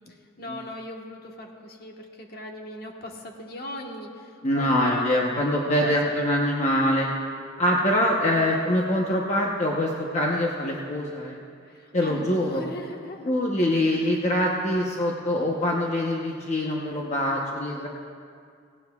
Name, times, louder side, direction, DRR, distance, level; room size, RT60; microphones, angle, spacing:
voice 1, 0.1-6.2 7.7-8.2 11.6-13.3 13.9-14.1, left 1 dB, 50° left, 1 dB, 1.4 m, -39 dB
voice 2, 4.4-7.1 7.6-11.4 11.9-12.6 13.3-17.9, left 1 dB, 35° left, -1 dB, 1.0 m, -24 dB
18.5 x 17.0 x 2.4 m, 2.3 s
head